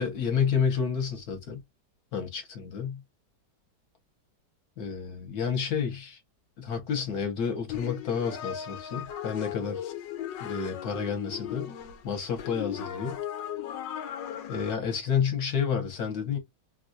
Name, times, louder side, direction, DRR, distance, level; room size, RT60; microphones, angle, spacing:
voice 1, 0.0-1.6 2.1-3.0 4.8-6.2 6.6-9.8 10.4-11.7 12.0-13.2 14.5-16.4, left 6 dB, 65° left, 1.4 m, -30 dB
sound 1, 7.7-14.8, left 10 dB, 90° left, 1.3 m, -37 dB
3.3 x 2.3 x 2.5 m
omnidirectional pair, 1.9 m